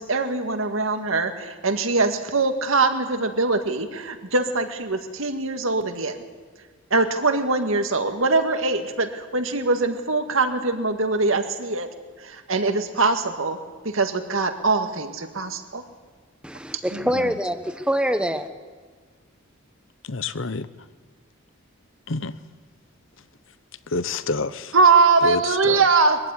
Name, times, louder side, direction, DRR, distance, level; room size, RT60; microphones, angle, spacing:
voice 1, 0.0-6.2 6.9-11.9 12.2-13.6 13.8-15.8 16.7-17.1 24.7-26.2, right 3 dB, 75° right, 1.9 m, -22 dB
voice 2, 16.4-18.5, equal, 5° right, 1.0 m, -25 dB
voice 3, 20.0-20.7 22.1-22.3 23.9-24.7 25.2-25.8, left 3 dB, 65° left, 0.9 m, -28 dB
22.5 x 15.0 x 9.8 m
head